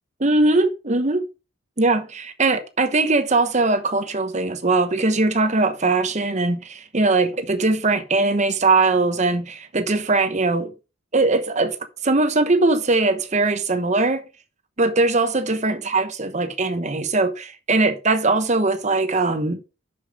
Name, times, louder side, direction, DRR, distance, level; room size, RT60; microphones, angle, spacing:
voice 1, 0.2-1.3 1.8-10.7 11.1-11.8 12.0-14.2 14.8-19.6, right 3 dB, 35° right, 1.0 m, -20 dB
7.1 x 6.8 x 5.1 m
head